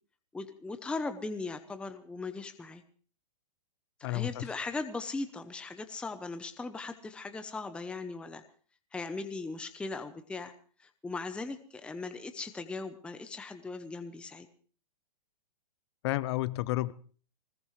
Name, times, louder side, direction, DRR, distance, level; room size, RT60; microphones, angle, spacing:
voice 1, 0.3-2.8 4.1-8.4 8.9-10.5 10.8-14.5, left 3 dB, 5° left, 0.8 m, -38 dB
voice 2, 4.0-4.5 16.0-16.9, left 17 dB, 40° left, 0.7 m, -31 dB
20.5 x 20.0 x 3.2 m
hypercardioid pair, 145°, 21 cm